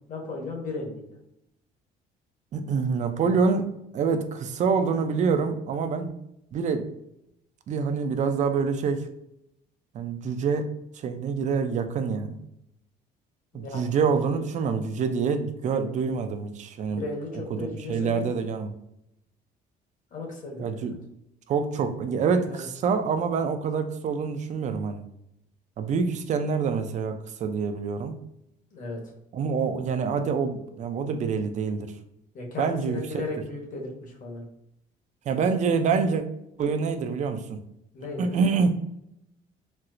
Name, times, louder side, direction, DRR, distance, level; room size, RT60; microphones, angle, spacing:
voice 1, 0.1-1.1 13.5-14.0 14.3-14.5 16.9-18.4 20.1-20.9 22.4-22.6 28.7-29.0 32.3-34.4 37.9-38.3, left 3 dB, 50° left, 0 dB, 1.1 m, -36 dB
voice 2, 2.5-6.1 6.5-6.9 7.7-9.1 9.9-10.7 11.0-12.4 13.5-17.0 17.5-17.6 17.9-18.7 20.6-20.9 21.5-25.0 25.8-28.1 29.3-31.9 32.6-33.2 35.3-36.2 36.6-37.6 38.2-38.7, right 5 dB, 45° right, 7 dB, 0.4 m, -26 dB
4.2 x 2.0 x 2.5 m, 0.79 s
cardioid pair, 110°, 17 cm